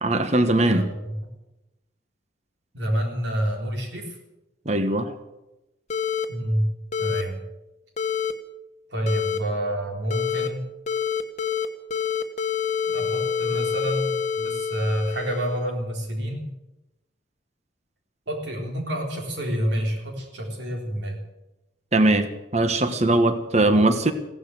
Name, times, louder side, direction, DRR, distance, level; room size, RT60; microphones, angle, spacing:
voice 1, 0.0-0.9 4.6-5.1 21.9-24.1, right 2 dB, 35° right, 10 dB, 1.2 m, -20 dB
voice 2, 0.5-1.2 2.7-4.2 6.3-6.7 7.0-7.4 8.9-10.6 12.9-16.5 18.3-21.2, equal, 65° right, 2 dB, 3.7 m, -28 dB
sound 1, 5.9-6.3 6.9-7.2 8.0-8.3 9.1-9.4 10.1-10.5 10.9-11.7 11.9-15.6, left 7 dB, 35° left, 1.2 m, -27 dB
16.0 x 11.5 x 7.9 m, 0.97 s
head